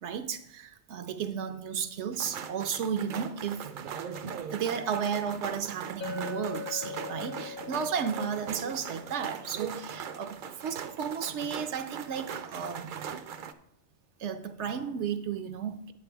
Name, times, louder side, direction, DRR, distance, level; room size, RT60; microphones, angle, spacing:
voice 1, 0.0-3.6 4.5-13.0 14.2-15.9, right 7 dB, 80° right, 1.0 m, -33 dB
sound 1, 2.1-13.5, right 7 dB, 60° right, 0.6 m, -40 dB
Chink clink, 6.0-10.2, left 8 dB, 55° left, 0.8 m, -42 dB
9.1 x 8.3 x 3.4 m
omnidirectional pair, 1.2 m